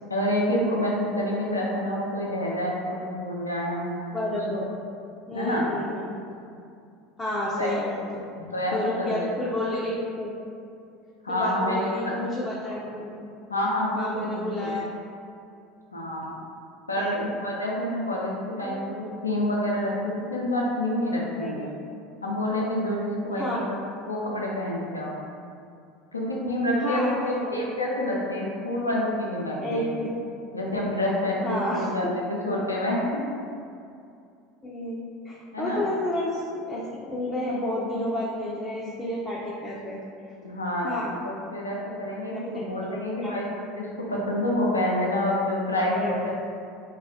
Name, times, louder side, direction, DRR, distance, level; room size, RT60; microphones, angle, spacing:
voice 1, 0.1-3.9 4.3-4.4 5.3-5.6 7.6-7.7 8.4-9.3 11.2-12.2 13.5-14.7 15.9-16.4 16.9-21.7 22.2-23.8 24.1-25.2 26.1-29.9 30.5-33.4 35.5-35.8 40.4-40.9 41.2-46.3, left 1 dB, 90° left, -3 dB, 0.4 m, -28 dB
voice 2, 4.1-4.6 5.3-6.1 7.2-8.2 8.7-10.3 11.3-13.1 14.0-14.8 17.0-17.2 18.6-18.8 21.4-21.7 23.4-23.7 26.8-27.5 29.6-30.1 31.4-32.1 34.6-40.0 40.8-41.2 42.3-42.7 43.2-43.4 45.9-46.1, left 1 dB, 15° left, -7 dB, 0.5 m, -30 dB
2.4 x 2.2 x 3.5 m, 2.5 s
figure-of-eight pair, 75°, 0 cm